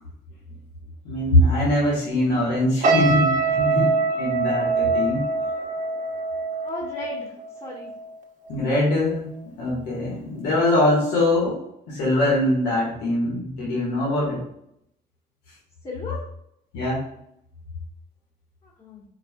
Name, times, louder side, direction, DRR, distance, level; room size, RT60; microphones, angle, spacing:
voice 1, 1.1-3.9 4.2-5.2 8.5-9.3 9.6-11.6 11.9-14.4 16.7-17.0, left 1 dB, 85° left, -5 dB, 1.8 m, -22 dB
sound 1, 2.8-8.1 8.4-8.7, right 3 dB, 50° right, 1.1 m, -24 dB
voice 2, 6.6-7.9 15.8-16.3 18.6-19.0, left 1 dB, 35° left, -5 dB, 1.4 m, -36 dB
4.9 x 4.7 x 2.3 m, 0.77 s
cardioid pair, 110°, 17 cm